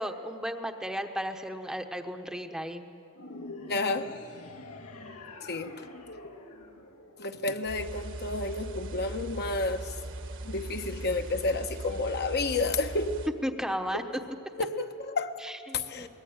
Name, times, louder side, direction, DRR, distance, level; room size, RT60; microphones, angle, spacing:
voice 1, 0.0-2.8 13.4-14.0 15.4-16.1, equal, 5° right, 5 dB, 1.0 m, -34 dB
sound 1, 3.2-7.7, left 2 dB, 85° left, 2.3 m, -45 dB
voice 2, 3.7-4.1 5.5-5.9 7.2-9.9 10.4-13.2 13.9-14.0 14.6-15.4 15.7-16.1, left 3 dB, 50° left, 6 dB, 1.1 m, -31 dB
sound 2, 7.7-13.3, right 2 dB, 60° right, 1.5 m, -40 dB
23.0 x 20.0 x 8.9 m, 2.6 s
head